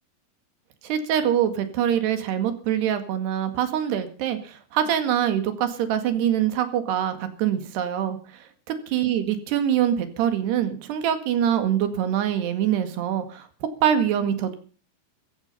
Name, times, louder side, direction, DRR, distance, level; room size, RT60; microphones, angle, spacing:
voice 1, 0.8-8.5 8.9-13.5 13.8-14.6, right 10 dB, 65° right, 8 dB, 3.6 m, -24 dB
15.0 x 15.0 x 5.6 m, 0.39 s
omnidirectional pair, 5.8 m